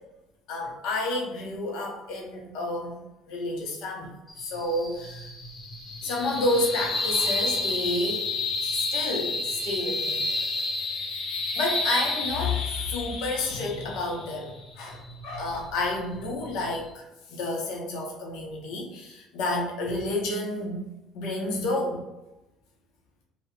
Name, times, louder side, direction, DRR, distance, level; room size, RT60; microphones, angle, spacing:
voice 1, 0.5-3.0 3.3-4.1 4.4-5.3 6.0-8.3 8.6-10.2 11.6-17.0 17.3-20.8 21.1-22.0, left 2 dB, 70° left, 0 dB, 0.9 m, -30 dB
sound 1, 4.3-16.9, left 2 dB, 45° left, 0.8 m, -31 dB
2.9 x 2.3 x 3.3 m, 0.99 s
hypercardioid pair, 70°, 0 cm